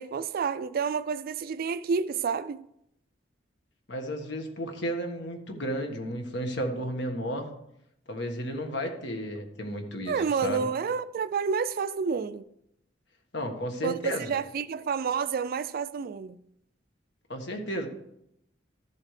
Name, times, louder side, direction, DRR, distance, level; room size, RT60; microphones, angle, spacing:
voice 1, 0.0-2.6 10.1-12.4 13.8-16.4, right 6 dB, 50° right, 0.4 m, -29 dB
voice 2, 3.9-7.5 8.1-10.7 13.3-14.3 17.3-17.9, equal, 70° left, 1.5 m, -33 dB
13.5 x 7.3 x 3.3 m
head